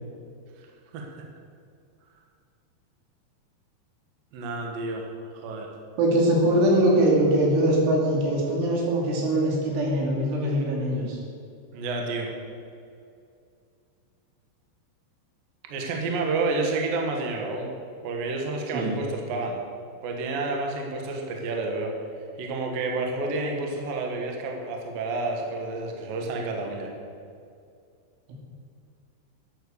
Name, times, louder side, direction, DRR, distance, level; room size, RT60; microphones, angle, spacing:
voice 1, 4.3-5.7 11.7-12.3 15.7-17.7 18.0-19.6 20.0-22.0 22.4-26.9, right 3 dB, 60° right, 1 dB, 2.7 m, -30 dB
voice 2, 6.0-11.2 18.7-18.9, right 1 dB, 80° right, -2 dB, 5.0 m, -22 dB
12.0 x 8.8 x 7.1 m, 2.4 s
omnidirectional pair, 5.4 m